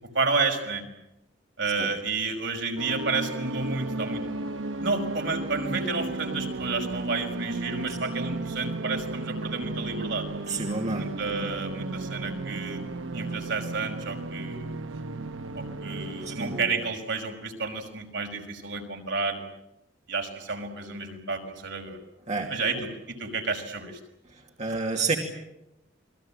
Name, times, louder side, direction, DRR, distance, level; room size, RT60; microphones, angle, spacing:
voice 1, 0.1-0.8 1.6-4.2 4.8-10.3 10.9-12.8 13.1-14.7 15.5-19.4 20.1-22.0 22.5-24.0, right 4 dB, 65° right, 3 dB, 5.6 m, -31 dB
sound 1, 2.8-16.6, right 2 dB, 90° right, 1.0 m, -34 dB
voice 2, 10.5-11.0 16.2-16.8 22.3-22.5 24.3-25.2, right 3 dB, 40° right, 1 dB, 2.9 m, -30 dB
29.0 x 21.5 x 8.9 m, 0.87 s
head